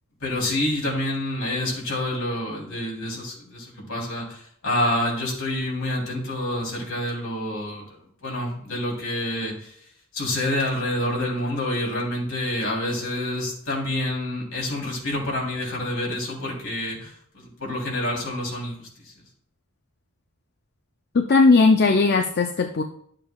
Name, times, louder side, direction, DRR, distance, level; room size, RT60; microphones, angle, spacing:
voice 1, 0.2-9.8 10.1-18.9, left 1 dB, 70° left, -2 dB, 3.3 m, -28 dB
voice 2, 21.1-22.8, left 3 dB, 50° left, 5 dB, 0.5 m, -17 dB
12.0 x 7.5 x 2.3 m, 0.63 s
head